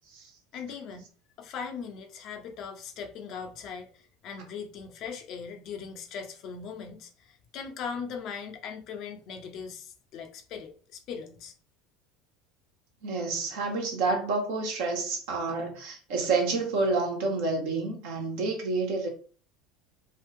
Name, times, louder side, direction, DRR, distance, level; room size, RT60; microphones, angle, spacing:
voice 1, 0.5-1.1 1.4-11.5, left 6 dB, 50° left, 0.7 m, -39 dB
voice 2, 13.0-19.1, right 3 dB, 65° right, 1.2 m, -29 dB
3.7 x 2.4 x 3.3 m
hypercardioid pair, 75°, 0 cm